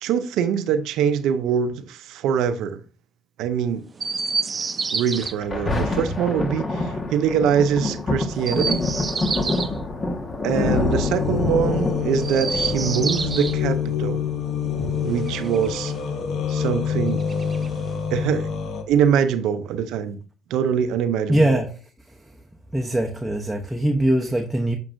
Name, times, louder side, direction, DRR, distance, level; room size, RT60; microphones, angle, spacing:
voice 1, 0.0-2.8 3.4-3.8 4.9-8.8 10.4-14.2 15.0-15.9 16.5-17.2 18.1-18.5 18.9-20.2 20.5-21.6, right 8 dB, 75° right, 0.5 m, -23 dB
Chirp tweet, 4.0-5.3 8.3-9.7 12.1-13.6 15.0-16.1 17.2-18.1, right 4 dB, 35° right, 0.6 m, -29 dB
Thunder, 5.2-16.2 16.8-16.9, left 2 dB, 35° left, 1.4 m, -27 dB
sound 1, 10.5-18.8, left 7 dB, 60° left, 1.0 m, -27 dB
voice 2, 21.3-22.3 22.7-24.8, right 1 dB, 5° right, 0.8 m, -22 dB
7.4 x 5.2 x 2.6 m
supercardioid pair, 75°, 0 cm